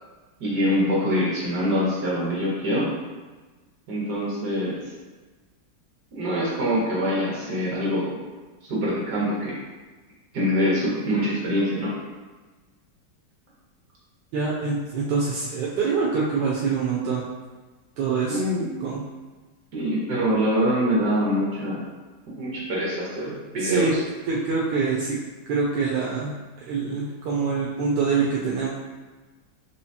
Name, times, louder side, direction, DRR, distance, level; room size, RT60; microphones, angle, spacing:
voice 1, 0.4-2.9 3.9-4.8 6.1-8.1 8.7-9.5 10.3-11.9 18.3-18.7 19.7-21.8 22.3-24.0, equal, 65° right, -6 dB, 1.9 m, -24 dB
voice 2, 14.3-17.2 18.0-18.4 18.8-19.0 23.6-23.9 24.3-25.2 25.5-26.3 26.7-28.7, right 4 dB, 85° right, -5 dB, 1.3 m, -25 dB
4.7 x 3.1 x 2.7 m, 1.3 s
omnidirectional pair, 1.9 m